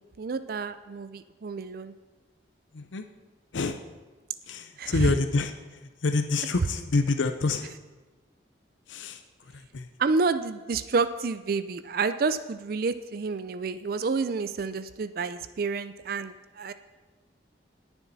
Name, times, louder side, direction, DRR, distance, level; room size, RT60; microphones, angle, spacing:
voice 1, 0.0-1.9 4.8-5.1 10.0-16.7, right 4 dB, 50° right, 12 dB, 0.4 m, -29 dB
voice 2, 2.7-3.1 3.5-3.8 4.5-7.7 8.9-9.9, left 3 dB, 90° left, 8 dB, 0.6 m, -28 dB
19.5 x 7.1 x 4.1 m, 1.2 s
head